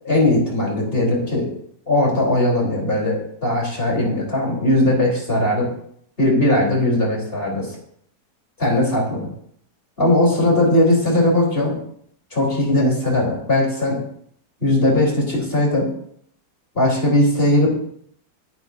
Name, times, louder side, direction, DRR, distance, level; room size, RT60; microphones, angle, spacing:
voice 1, 0.0-1.4 1.9-5.7 6.2-7.7 8.6-9.3 10.0-11.7 12.3-14.0 14.6-15.9 16.7-17.7, left 1 dB, 35° left, -2 dB, 4.2 m, -19 dB
19.0 x 9.3 x 2.7 m, 0.66 s
omnidirectional pair, 1.8 m